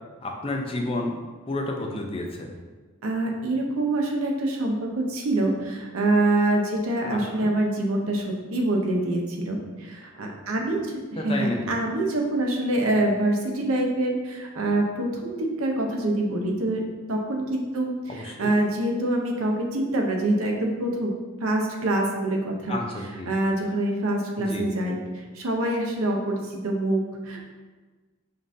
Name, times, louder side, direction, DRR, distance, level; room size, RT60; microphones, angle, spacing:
voice 1, 0.2-1.1 1.5-2.5 7.1-7.5 11.2-11.6 18.1-18.5 22.7-23.3 24.4-24.7, left 2 dB, 25° left, 1 dB, 0.4 m, -31 dB
voice 2, 3.0-8.2 8.5-16.8 17.1-21.1 21.4-22.8 23.3-27.4, right 1 dB, 85° right, 1 dB, 0.6 m, -25 dB
5.2 x 2.6 x 2.6 m, 1.3 s
head